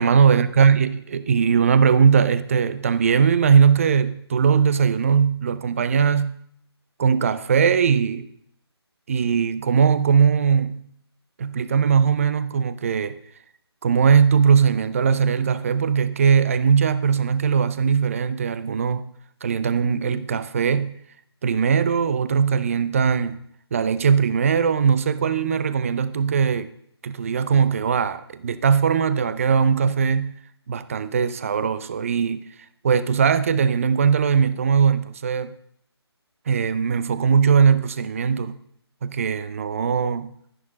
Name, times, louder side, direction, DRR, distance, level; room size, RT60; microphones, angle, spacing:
voice 1, 0.0-6.4 7.0-8.3 9.1-10.9 11.4-13.2 13.8-19.1 19.4-20.9 21.4-23.4 23.7-26.7 27.0-30.3 30.7-32.5 32.8-35.5 36.5-38.6 39.0-40.3, right 6 dB, 30° right, 0.6 m, -20 dB
11.5 x 11.0 x 4.1 m
figure-of-eight pair, 150°, 14 cm